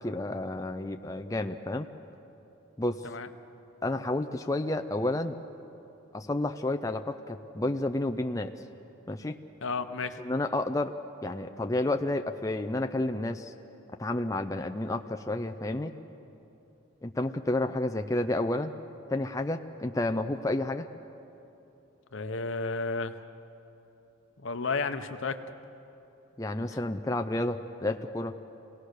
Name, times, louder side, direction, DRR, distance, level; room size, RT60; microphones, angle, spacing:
voice 1, 0.0-1.9 2.8-3.0 3.8-5.4 6.1-8.5 9.1-9.4 10.2-11.0 11.2-13.5 14.0-15.9 17.0-18.7 19.1-20.9 26.4-28.3, left 2 dB, 15° left, 5 dB, 0.5 m, -30 dB
voice 2, 9.6-10.2 22.1-23.2 24.4-25.4 26.7-26.8, left 4 dB, 65° left, 9 dB, 0.9 m, -32 dB
27.0 x 18.0 x 6.6 m, 3.0 s
head